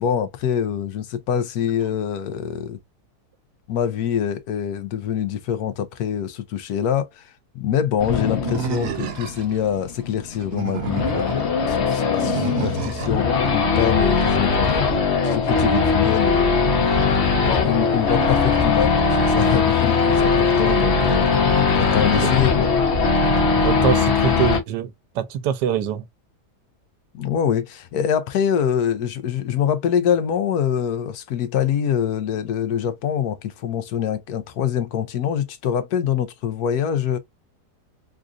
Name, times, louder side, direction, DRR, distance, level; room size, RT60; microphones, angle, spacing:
voice 1, 0.0-2.8 3.7-11.4 11.7-14.8 15.2-17.0 17.4-21.3 21.7-22.7 27.1-37.2, left 9 dB, 70° left, 1.2 m, -24 dB
Race car auto racing / Idling / Accelerating revving vroom, 8.0-24.6, left 4 dB, 45° left, 1.1 m, -20 dB
Animal, 8.4-9.6 10.3-11.4 12.2-13.2, right 11 dB, 65° right, 1.0 m, -30 dB
voice 2, 23.6-26.0, right 9 dB, 85° right, 1.2 m, -24 dB
3.7 x 2.4 x 2.5 m
omnidirectional pair, 1.8 m